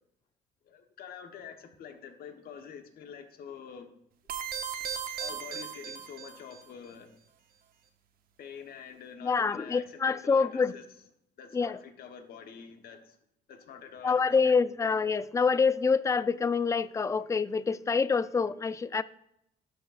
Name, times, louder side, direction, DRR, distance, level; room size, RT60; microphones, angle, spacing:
voice 1, 0.6-3.9 5.2-7.2 8.4-10.8 11.4-13.2 13.5-14.6, left 7 dB, 65° left, 6 dB, 1.2 m, -46 dB
sound 1, 4.3-6.6, right 8 dB, 60° right, 0.9 m, -37 dB
voice 2, 9.2-10.7 11.5-11.8 14.0-19.0, left 5 dB, 20° left, 16 dB, 0.3 m, -26 dB
12.5 x 6.5 x 2.5 m, 0.77 s
cardioid pair, 110°, 17 cm